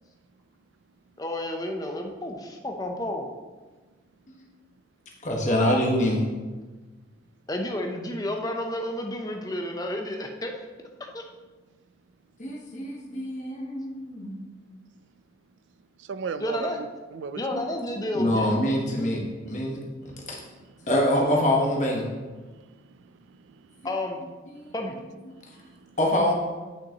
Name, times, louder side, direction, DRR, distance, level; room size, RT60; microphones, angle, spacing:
voice 1, 1.2-3.3 5.7-5.8 7.5-10.6 11.1-11.2 16.4-16.8 17.4-18.5 23.8-24.2 24.7-24.9, left 1 dB, 20° left, 2 dB, 0.6 m, -31 dB
voice 2, 5.2-6.2 12.4-14.4 17.5-17.7 18.1-19.2 19.5-19.8 20.3-20.4 20.9-22.1 24.6-24.7 25.3-25.4 26.0-26.3, left 1 dB, 40° left, -1 dB, 1.2 m, -25 dB
voice 3, 16.0-16.9 17.1-17.6 20.2-20.3 22.5-22.6 23.3-23.9 25.4-25.9, right 6 dB, 90° right, 12 dB, 0.4 m, -37 dB
8.8 x 5.8 x 2.9 m, 1.3 s
head